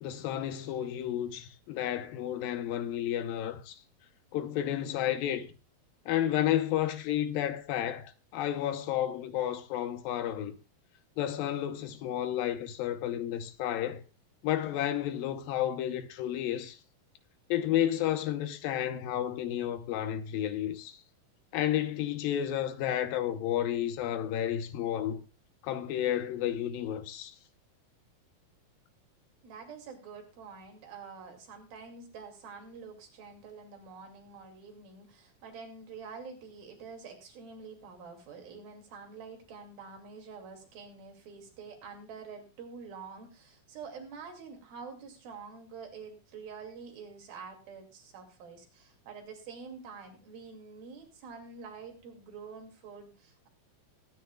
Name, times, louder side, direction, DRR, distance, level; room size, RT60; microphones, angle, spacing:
voice 1, 0.0-3.8 4.3-5.5 6.1-10.6 11.2-14.0 14.4-16.8 17.5-21.0 21.5-25.2 25.6-27.4, left 11 dB, 80° left, 2.6 m, -31 dB
voice 2, 29.4-53.5, right 5 dB, 80° right, 4.2 m, -47 dB
23.0 x 9.5 x 2.3 m
omnidirectional pair, 4.2 m